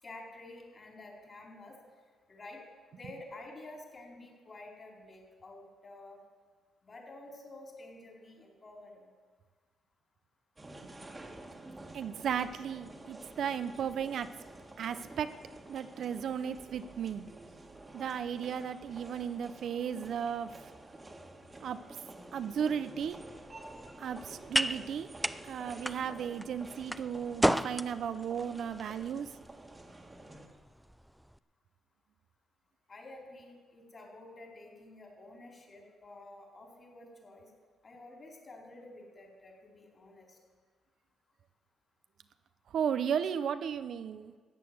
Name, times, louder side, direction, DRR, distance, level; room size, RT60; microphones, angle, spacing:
voice 1, 0.0-1.8 2.3-2.6 2.9-6.2 6.8-9.1 32.9-37.5 37.8-40.4, left 2 dB, 35° left, -1 dB, 4.4 m, -50 dB
sound 1, 10.6-30.5, right 2 dB, 20° right, 1.6 m, -50 dB
voice 2, 11.9-14.3 14.8-15.3 15.7-17.2 17.9-20.5 21.6-21.8 22.3-23.2 24.0-25.1 25.4-29.3 42.7-44.3, right 8 dB, 65° right, 11 dB, 0.6 m, -35 dB
sound 2, 23.0-31.4, equal, 5° right, 0.4 m, -36 dB
14.5 x 9.1 x 7.9 m, 1.5 s
cardioid pair, 90°, 0 cm